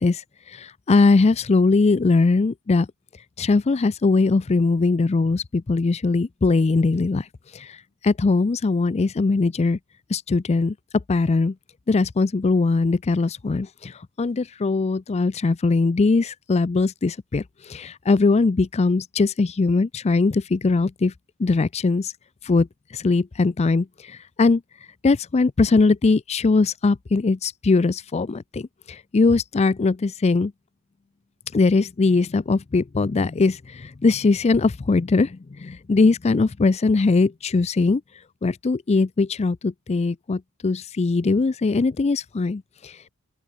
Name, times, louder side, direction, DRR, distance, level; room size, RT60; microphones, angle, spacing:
voice 1, 0.0-2.9 3.4-9.8 10.1-11.5 11.9-21.1 21.4-22.1 22.4-24.6 25.0-30.5 31.5-38.0 38.4-43.1, left 3 dB, 30° left, 0.4 m, -21 dB
open air
head